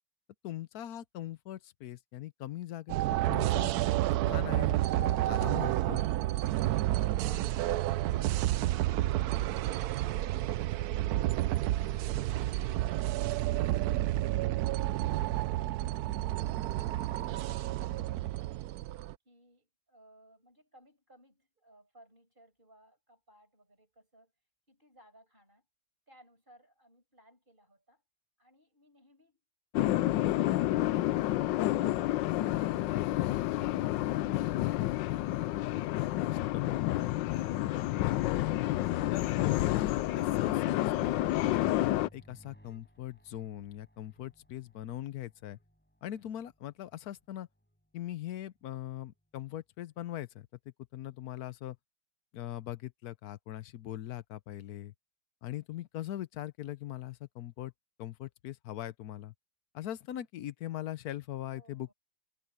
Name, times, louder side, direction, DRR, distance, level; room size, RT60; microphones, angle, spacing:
voice 1, 0.4-3.7 4.3-6.0 36.2-36.6 38.1-38.3 39.1-45.6 46.0-47.5 47.9-50.5 50.9-51.8 52.3-54.9 55.4-57.7 58.0-59.3 59.7-61.9, left 13 dB, 65° left, 1.1 m, -41 dB
sound 1, 2.9-19.1, right 15 dB, 75° right, 0.9 m, -30 dB
voice 2, 19.2-24.3 24.7-25.7 26.1-28.0 28.4-29.4 30.2-34.4 61.5-61.9, right 1 dB, 25° right, 6.2 m, -61 dB
sound 2, 29.7-42.1, left 15 dB, 80° left, 1.3 m, -29 dB
sound 3, 41.3-48.6 49.0-49.2 49.9-50.0, equal, 5° left, 6.9 m, -63 dB
omnidirectional pair, 2.0 m